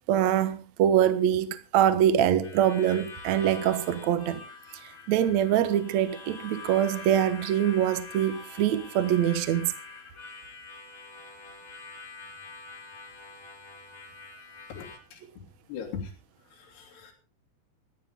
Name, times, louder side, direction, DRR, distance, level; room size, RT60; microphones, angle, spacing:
voice 1, 0.1-4.4 4.8-9.7, right 10 dB, 75° right, 1.6 m, -24 dB
Harmonica, 2.4-15.0, left 4 dB, 35° left, 2.7 m, -45 dB
voice 2, 14.7-15.2 15.7-16.1 16.5-17.1, left 6 dB, 70° left, 4.8 m, -39 dB
18.5 x 13.5 x 3.7 m
omnidirectional pair, 5.0 m